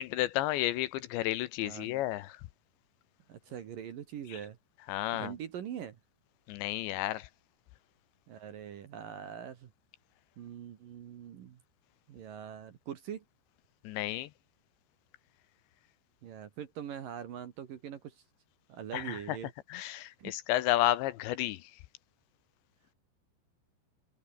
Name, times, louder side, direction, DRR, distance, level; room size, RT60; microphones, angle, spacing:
voice 1, 0.0-2.4 4.9-5.3 6.5-7.3 13.8-14.3 18.9-19.4 19.7-21.7, left 15 dB, 75° left, 3.0 m, -32 dB
voice 2, 3.3-4.6 5.1-6.0 8.3-9.7 10.4-11.6 12.1-13.2 16.2-18.2 18.7-19.5 20.2-20.3, right 9 dB, 60° right, 2.7 m, -43 dB
omnidirectional pair, 5.5 m